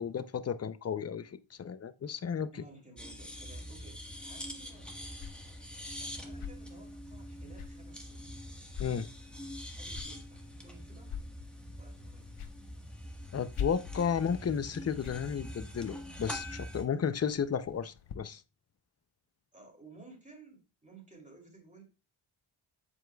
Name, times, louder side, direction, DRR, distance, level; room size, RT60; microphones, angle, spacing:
voice 1, 0.0-2.5 8.8-9.1 13.3-18.4, left 7 dB, 30° left, 0.5 m, -33 dB
voice 2, 2.5-4.9 6.0-8.4 9.7-11.2 11.8-12.4 19.5-21.8, right 3 dB, 15° right, 2.7 m, -56 dB
sound 1, 3.0-16.8, equal, ahead, 1.2 m, -44 dB
sound 2, 4.1-18.1, left 8 dB, 75° left, 1.0 m, -47 dB
7.8 x 7.2 x 2.2 m
wide cardioid pair, 155°, 50 cm